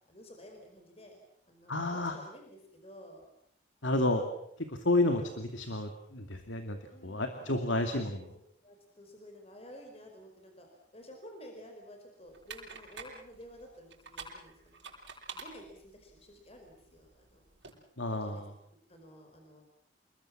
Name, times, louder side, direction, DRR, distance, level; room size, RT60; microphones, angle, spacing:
voice 1, 0.1-1.2 1.5-3.3 6.9-7.6 8.2-10.7 10.9-14.8 15.3-17.7 18.1-18.5 18.9-19.6, equal, 30° left, 3 dB, 4.8 m, -52 dB
voice 2, 1.7-2.1 3.8-4.2 4.7-6.8 7.0-8.3 18.0-18.5, left 2 dB, 85° left, 6 dB, 2.6 m, -30 dB
sound 1, 12.3-17.7, right 4 dB, 75° right, 7.8 m, -49 dB
29.5 x 21.0 x 7.4 m, 0.72 s
head